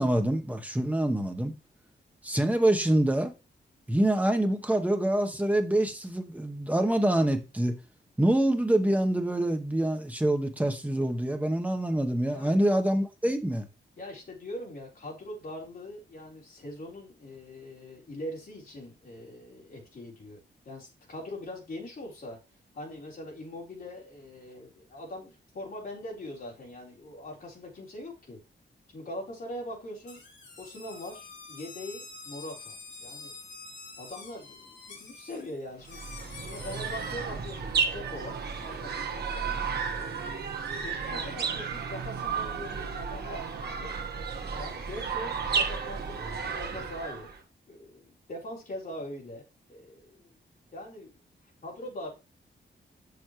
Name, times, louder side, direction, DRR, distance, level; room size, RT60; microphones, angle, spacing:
voice 1, 0.0-1.5 2.2-3.3 3.9-7.8 8.2-13.7, right 1 dB, 10° right, 0.9 m, -26 dB
voice 2, 12.2-12.6 14.0-20.4 20.7-22.4 22.7-28.4 28.9-30.2 30.6-33.3 34.0-39.9 40.7-43.9 44.5-47.3 47.7-50.3 50.7-51.1 51.6-52.1, left 1 dB, 50° left, 3.8 m, -42 dB
sound 1, 30.1-37.2, left 3 dB, 80° left, 3.1 m, -46 dB
sound 2, 35.8-47.4, right 5 dB, 60° right, 1.2 m, -33 dB
7.0 x 6.8 x 3.1 m
wide cardioid pair, 160°, 19 cm